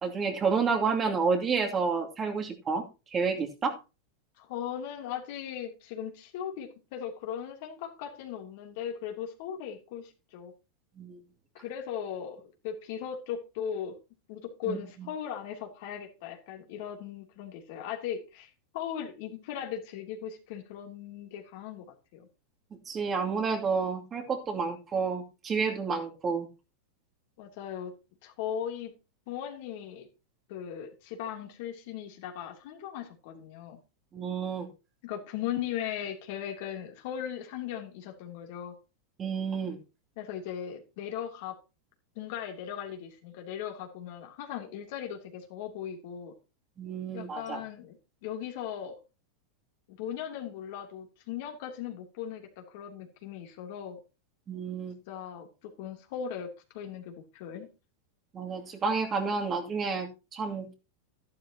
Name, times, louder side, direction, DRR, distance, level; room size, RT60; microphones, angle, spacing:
voice 1, 0.0-2.8 3.1-3.8 11.0-11.2 14.7-14.8 22.9-26.5 34.1-34.7 39.2-39.8 46.8-47.6 54.5-54.9 58.3-60.7, right 5 dB, 30° right, 2 dB, 2.6 m, -30 dB
voice 2, 4.4-10.5 11.5-13.9 14.3-21.8 22.1-22.2 27.4-27.9 28.2-28.9 29.3-30.1 30.5-33.8 35.0-38.7 40.2-41.6 42.1-46.3 47.1-48.0 48.2-48.9 50.0-54.0 55.1-56.5 56.7-57.7, left 9 dB, 60° left, 3 dB, 2.9 m, -38 dB
12.5 x 11.5 x 2.9 m, 0.30 s
hypercardioid pair, 95°, 0 cm